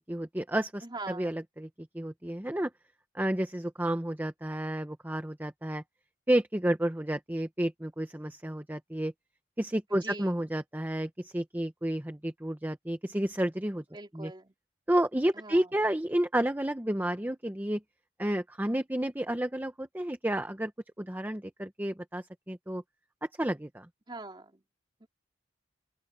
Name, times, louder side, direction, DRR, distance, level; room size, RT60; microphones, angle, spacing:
voice 1, 0.0-1.7 1.9-2.7 3.1-5.8 6.3-9.1 9.6-13.8 14.1-14.3 14.9-17.8 18.2-20.7 21.0-22.8 23.4-23.9, right 1 dB, 10° right, 0.9 m, -31 dB
voice 2, 0.8-1.4 9.9-10.5 13.9-14.5 15.3-15.9 24.1-24.6 25.0-25.1, right 2 dB, 25° right, 3.3 m, -43 dB
open air
head